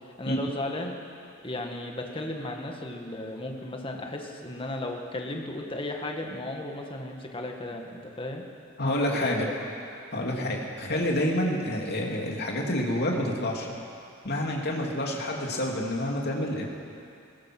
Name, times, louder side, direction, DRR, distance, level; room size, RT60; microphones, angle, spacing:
voice 1, 0.2-0.9 1.4-8.4 9.1-9.5 10.3-10.6, left 1 dB, 25° left, 2 dB, 2.0 m, -35 dB
voice 2, 8.8-9.5 10.1-13.7 14.2-16.6, left 1 dB, 55° left, 0 dB, 2.8 m, -28 dB
21.0 x 19.5 x 6.2 m, 2.5 s
head